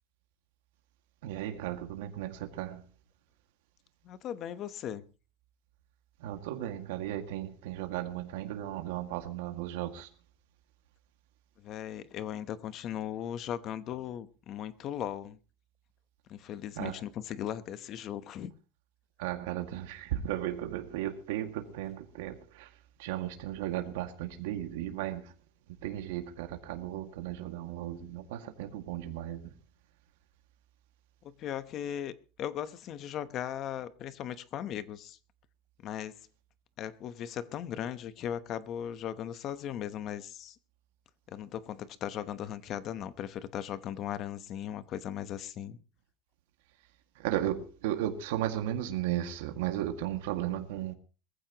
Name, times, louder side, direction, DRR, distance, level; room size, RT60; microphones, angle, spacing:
voice 1, 1.2-2.8 6.2-10.1 16.8-17.0 19.2-25.3 25.8-29.5 47.2-50.9, right 12 dB, 85° right, 1.9 m, -35 dB
voice 2, 4.0-5.0 11.6-15.4 16.3-18.5 31.2-32.1 32.4-35.2 35.8-36.2 36.8-40.6 41.3-45.8, left 10 dB, 30° left, 0.9 m, -38 dB
22.0 x 15.0 x 3.0 m
cardioid pair, 175°, 0 cm